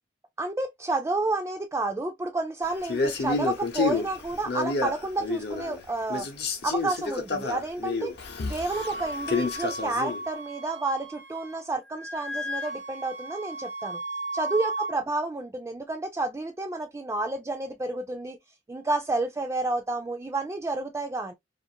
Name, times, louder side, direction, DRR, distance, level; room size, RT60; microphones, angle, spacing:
voice 1, 0.4-6.3 6.6-8.1 8.5-14.0 14.3-18.4 18.7-21.3, right 2 dB, 15° right, 0.3 m, -30 dB
Male speech man speaking, 2.8-5.8 6.1-10.2, left 3 dB, 65° left, 0.7 m, -29 dB
Wind instrument woodwind instrument, 8.7-11.6 11.9-14.9, right 1 dB, 75° right, 0.6 m, -35 dB
2.4 x 2.4 x 2.6 m
head